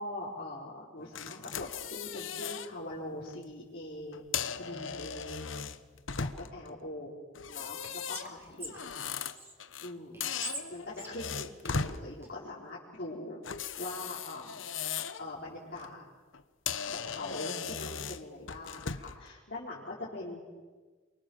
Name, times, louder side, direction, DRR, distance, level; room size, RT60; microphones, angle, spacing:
voice 1, 0.0-5.5 6.2-7.2 7.5-8.8 9.8-10.2 10.7-13.4 13.8-14.7 15.2-16.1 16.9-20.4, left 1 dB, 55° left, -6 dB, 4.8 m, -42 dB
sound 1, 1.2-2.7 3.1-3.4 4.1-6.7 7.4-9.9 10.2-12.0 13.4-15.2 15.6-15.9 16.3-16.4 16.7-19.2, left 6 dB, 80° left, 1.2 m, -37 dB
Whispering, 7.5-9.5 10.1-12.3, right 1 dB, 15° right, 4.0 m, -45 dB
28.5 x 24.5 x 7.4 m, 1.4 s
head